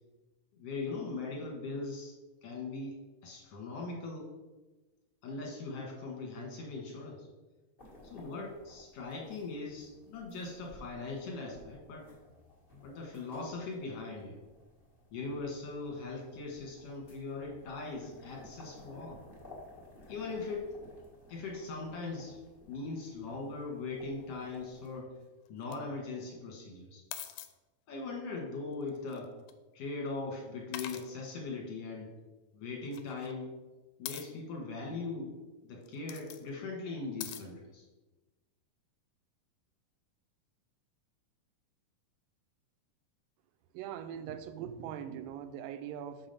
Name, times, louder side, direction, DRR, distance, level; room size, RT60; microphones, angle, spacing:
voice 1, 0.5-2.1 2.4-4.3 5.2-7.3 8.0-12.1 12.8-14.4 15.1-19.2 20.1-20.8 21.3-22.4 22.7-25.1 25.5-27.0 27.9-29.3 29.7-32.1 32.5-33.5 34.0-35.3 35.6-37.9, left 3 dB, 55° left, 0 dB, 2.1 m, -40 dB
sound 1, 7.8-25.0, left 2 dB, 40° left, 0.7 m, -56 dB
sound 2, 25.5-25.8 27.1-27.5 28.9-29.5 30.7-31.1 32.9-33.3 34.1-34.3 35.8-36.4 37.2-37.4, left 11 dB, 80° left, 2.0 m, -42 dB
voice 2, 43.7-46.3, right 9 dB, 85° right, 10 dB, 2.3 m, -41 dB
6.1 x 5.7 x 5.3 m, 1.2 s
omnidirectional pair, 3.9 m